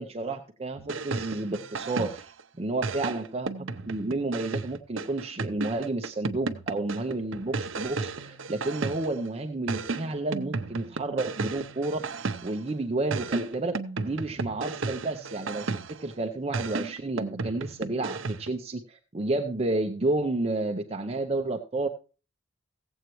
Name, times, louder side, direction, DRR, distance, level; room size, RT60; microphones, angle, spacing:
voice 1, 0.0-2.3 2.6-3.5 3.9-12.0 12.4-21.9, right 2 dB, 30° right, 4 dB, 0.6 m, -31 dB
sound 1, 0.8-2.4 2.8-9.3 9.7-12.7 13.1-16.1 16.5-18.6, right 3 dB, 70° right, 0.7 m, -34 dB
16.0 x 8.0 x 3.0 m, 0.34 s
head